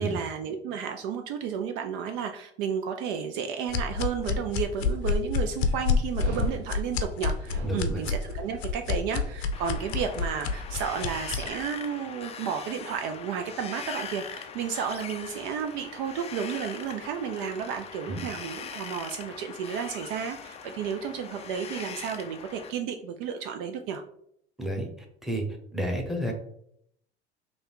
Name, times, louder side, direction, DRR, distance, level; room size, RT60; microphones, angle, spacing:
voice 1, 0.0-24.0, right 7 dB, 55° right, 5 dB, 0.5 m, -32 dB
sound 1, 3.7-11.5, left 5 dB, 65° left, 0.6 m, -28 dB
Dog, 6.1-11.5, right 2 dB, 80° right, 1.2 m, -44 dB
voice 2, 7.6-8.0 18.1-18.2 24.6-24.9 25.2-25.5 25.7-26.3, right 1 dB, ahead, 2 dB, 1.0 m, -30 dB
Wind, 9.5-22.7, left 6 dB, 20° left, 0.4 m, -41 dB
3.2 x 2.7 x 4.4 m, 0.72 s
hypercardioid pair, 75°, 34 cm